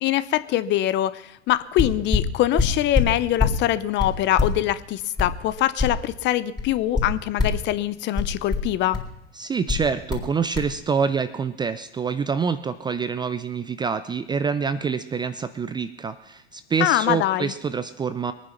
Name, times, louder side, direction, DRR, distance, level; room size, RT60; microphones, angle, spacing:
voice 1, 0.0-9.0 16.8-17.5, left 13 dB, 30° left, 16 dB, 0.7 m, -23 dB
sound 1, 1.5-1.6 1.8-3.6 4.0-6.2 6.6-7.7 8.2-9.1 9.7-10.3 10.5-10.7, left 4 dB, 10° left, 3.8 m, -24 dB
voice 2, 9.4-18.3, right 6 dB, 10° right, 12 dB, 0.5 m, -26 dB
21.0 x 9.7 x 5.8 m, 0.86 s
hypercardioid pair, 100°, 36 cm